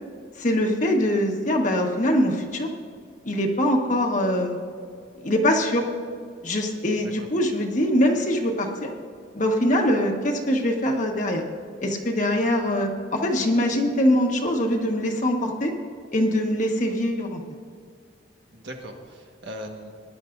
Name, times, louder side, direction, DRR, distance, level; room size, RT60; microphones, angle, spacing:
voice 1, 0.4-2.7 3.2-4.6 5.2-5.8 6.4-8.9 9.3-11.4 11.8-15.7 16.1-17.4, left 1 dB, 45° left, 2 dB, 1.4 m, -23 dB
voice 2, 6.9-7.3 18.5-19.9, equal, 75° right, 2 dB, 1.5 m, -39 dB
19.5 x 11.0 x 2.6 m, 2.2 s
head